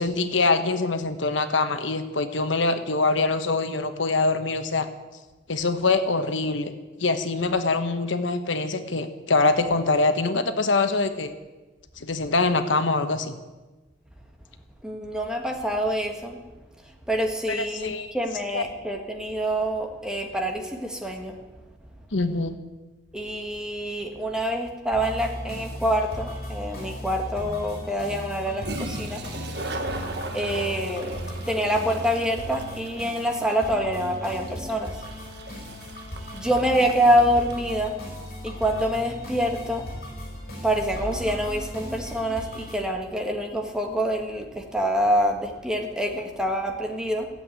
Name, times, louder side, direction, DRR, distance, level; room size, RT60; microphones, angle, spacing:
voice 1, 0.0-4.9 5.5-6.7 7.0-11.3 12.0-13.4 17.5-18.1 18.5-18.6 22.1-22.5, left 3 dB, 85° left, 9 dB, 1.2 m, -24 dB
voice 2, 14.8-16.4 17.1-21.4 23.1-29.2 30.3-35.0 36.3-38.0 38.4-39.8 40.6-47.3, equal, 5° right, 2 dB, 1.7 m, -26 dB
sound 1, 24.9-42.8, equal, 50° left, 5.5 m, -37 dB
Bass guitar, 28.5-34.8, left 4 dB, 80° right, 3.5 m, -47 dB
Toilet flush, 28.6-38.0, right 2 dB, 60° right, 1.5 m, -38 dB
15.5 x 8.1 x 9.4 m, 1.2 s
head